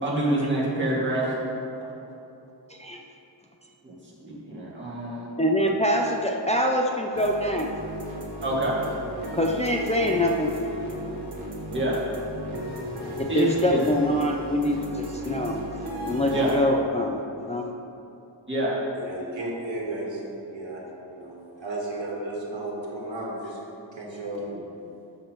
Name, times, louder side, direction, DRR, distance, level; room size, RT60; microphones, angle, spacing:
voice 1, 0.0-1.3 3.8-3.9 4.2-5.2 8.4-8.8 11.7-12.0 13.3-13.8 16.3-16.5 18.5-18.8, right 1 dB, 25° right, -6 dB, 2.1 m, -26 dB
voice 2, 2.7-3.0 5.4-7.7 9.3-10.5 13.2-15.6 16.1-17.2 17.5-17.6, left 1 dB, 15° left, 0 dB, 0.5 m, -24 dB
sound 1, 7.1-16.6, equal, 60° right, 1.4 m, -35 dB
voice 3, 18.9-20.8 21.1-23.6 23.9-24.6, right 2 dB, 90° right, -3 dB, 1.6 m, -34 dB
12.0 x 7.4 x 3.1 m, 2.8 s
wide cardioid pair, 115°, 44 cm